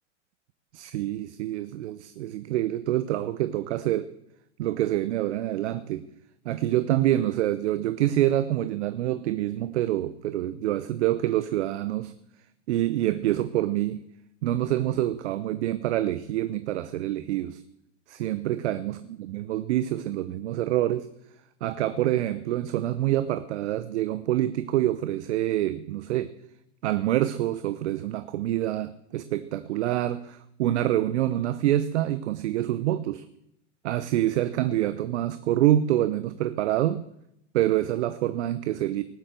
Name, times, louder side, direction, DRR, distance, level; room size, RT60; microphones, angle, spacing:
voice 1, 0.7-4.1 4.6-6.1 6.4-12.1 12.7-14.1 14.4-17.6 18.1-21.1 21.6-26.4 26.8-33.2 33.8-37.1 37.5-39.0, right 13 dB, 65° right, 13 dB, 0.9 m, -26 dB
18.5 x 7.9 x 7.6 m, 0.78 s
hypercardioid pair, 100°, 37 cm